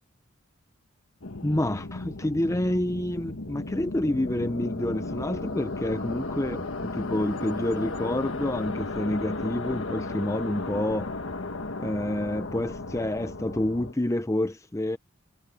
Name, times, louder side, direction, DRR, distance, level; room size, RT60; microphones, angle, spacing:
sound 1, 1.2-13.9, left 2 dB, 65° left, 1.5 m, -35 dB
voice 1, 1.4-11.1 11.8-15.0, left 1 dB, 15° left, 0.6 m, -28 dB
head